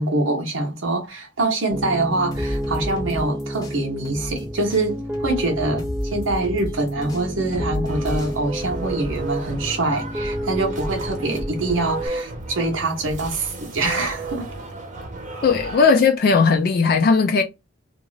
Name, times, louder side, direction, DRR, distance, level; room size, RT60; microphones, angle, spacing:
voice 1, 0.0-14.5, right 2 dB, 90° right, 0.7 m, -24 dB
Piano, 1.7-12.1, equal, 10° right, 0.5 m, -31 dB
sound 1, 2.3-4.4 4.7-9.3, left 1 dB, 20° left, 0.8 m, -32 dB
sound 2, 7.9-16.2, right 2 dB, 40° right, 0.8 m, -33 dB
voice 2, 15.4-17.4, left 5 dB, 50° left, 0.4 m, -17 dB
2.5 x 2.4 x 3.1 m
head